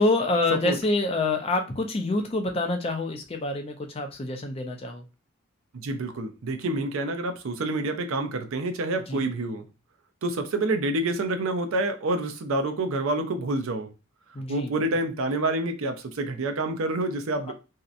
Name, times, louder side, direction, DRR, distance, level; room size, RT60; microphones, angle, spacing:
voice 1, 0.0-5.0 9.1-9.2 14.3-14.7 17.5-17.6, left 2 dB, 30° left, 0.4 m, -26 dB
voice 2, 5.7-9.6 10.2-13.9 14.5-17.5, right 2 dB, 75° right, 0.5 m, -28 dB
2.7 x 2.1 x 2.4 m
head